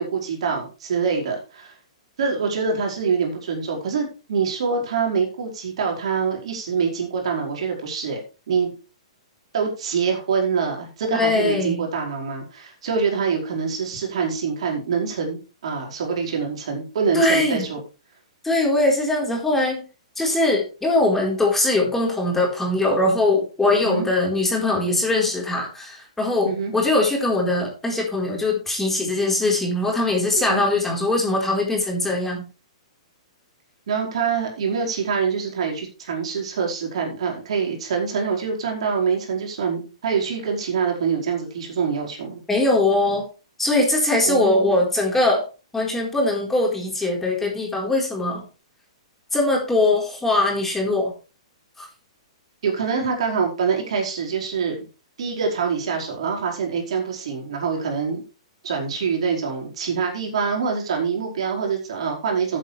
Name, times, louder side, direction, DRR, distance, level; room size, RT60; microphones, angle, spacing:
voice 1, 0.0-1.7 2.2-8.2 8.5-8.7 9.5-17.8 23.7-24.1 26.4-26.7 30.3-30.6 33.9-42.4 44.2-44.7 52.6-54.7 55.2-58.2 58.6-62.6, right 5 dB, 65° right, 0 dB, 4.8 m, -25 dB
voice 2, 11.1-11.8 17.1-17.7 18.4-19.8 20.2-32.5 42.5-43.2 43.6-45.4 45.7-48.4 49.3-51.1 51.8-51.9, left 2 dB, 5° left, -1 dB, 4.3 m, -21 dB
13.5 x 8.4 x 3.4 m, 0.32 s
hypercardioid pair, 130°, 3 cm